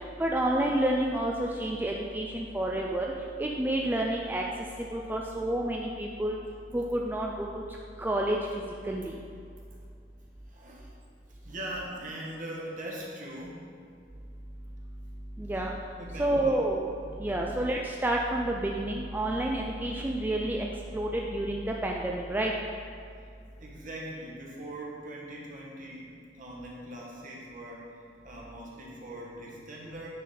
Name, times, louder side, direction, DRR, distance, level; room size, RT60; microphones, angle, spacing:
voice 1, 0.2-3.1 3.4-4.4 4.9-6.4 6.7-7.5 8.0-8.4 8.8-9.1 15.4-15.7 16.2-16.9 17.2-20.7 20.9-22.5, right 1 dB, 10° right, -1 dB, 0.4 m, -29 dB
voice 2, 10.5-11.0 11.3-13.6 16.0-16.6 17.2-17.6 23.6-27.9 28.2-30.1, right 1 dB, 50° right, -3 dB, 1.3 m, -41 dB
9.4 x 3.9 x 4.2 m, 2.3 s
head